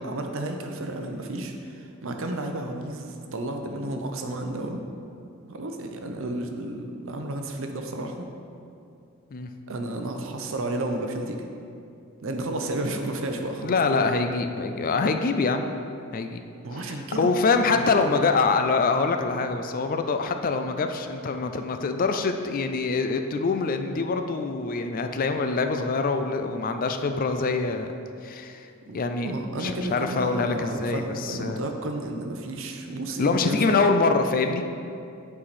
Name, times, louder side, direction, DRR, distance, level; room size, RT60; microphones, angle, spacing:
voice 1, 0.0-4.8 5.5-8.2 9.7-11.5 12.2-14.0 16.6-18.2 28.9-29.0 29.2-33.8, right 1 dB, 60° right, 4 dB, 0.7 m, -32 dB
voice 2, 13.6-15.7 16.1-16.4 16.8-27.9 28.2-28.7 28.9-31.6 33.2-34.6, left 4 dB, 40° left, 7 dB, 0.4 m, -25 dB
8.6 x 4.8 x 4.2 m, 2.5 s
head